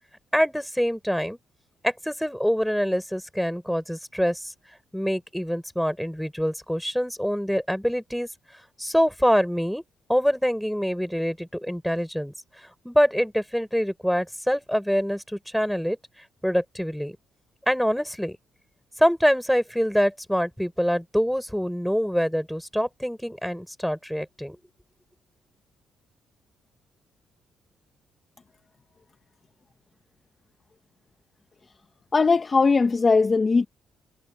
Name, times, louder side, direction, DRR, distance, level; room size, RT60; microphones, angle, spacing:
voice 1, 0.3-1.4 1.8-4.5 4.9-8.3 8.8-9.8 10.1-12.3 12.8-16.0 16.4-17.2 17.7-18.4 19.0-24.6, equal, ahead, 5.8 m, -25 dB
voice 2, 32.1-33.7, left 4 dB, 30° left, 1.3 m, -19 dB
cardioid pair, 90°, 0 cm